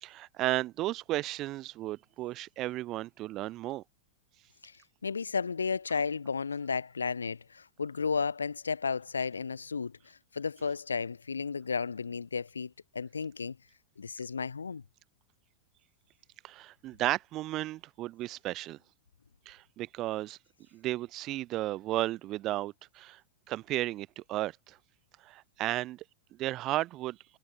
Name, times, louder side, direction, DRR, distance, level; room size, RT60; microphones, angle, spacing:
voice 1, 0.0-3.8 16.4-18.8 19.5-20.4 20.7-23.2 23.5-24.8 25.2-26.0 26.4-27.2, right 16 dB, 35° right, 0.4 m, -34 dB
voice 2, 5.0-13.6 14.0-14.8, left 5 dB, 75° left, 0.4 m, -33 dB
figure-of-eight pair, 90°, 0 cm